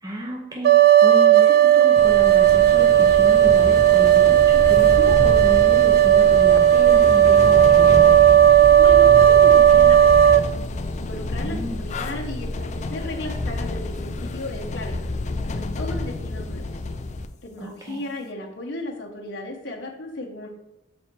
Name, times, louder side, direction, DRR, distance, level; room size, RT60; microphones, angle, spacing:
voice 1, 0.0-8.1 11.4-11.8 17.6-18.0, right 1 dB, 20° right, -2 dB, 0.9 m, -32 dB
sound 1, 0.6-10.4, right 11 dB, 50° right, 0.3 m, -14 dB
sound 2, 2.0-17.3, left 2 dB, 40° left, 0.5 m, -29 dB
voice 2, 8.7-10.4 11.0-15.0 15.5-16.6 17.4-20.5, left 1 dB, 65° left, 0 dB, 1.0 m, -35 dB
7.2 x 4.3 x 4.6 m, 0.98 s
head